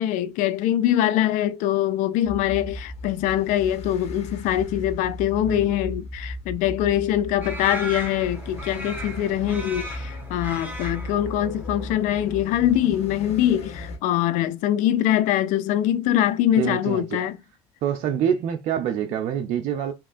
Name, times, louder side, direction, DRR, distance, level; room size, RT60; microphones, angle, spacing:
voice 1, 0.0-17.4, left 12 dB, 70° left, 0.5 m, -23 dB
sound 1, 2.2-14.0, left 1 dB, 50° left, 1.2 m, -36 dB
sound 2, 7.4-13.3, right 1 dB, 15° right, 1.5 m, -38 dB
voice 2, 16.6-17.3 17.8-19.9, right 9 dB, 60° right, 0.6 m, -26 dB
3.5 x 3.0 x 2.5 m
hypercardioid pair, 75°, 14 cm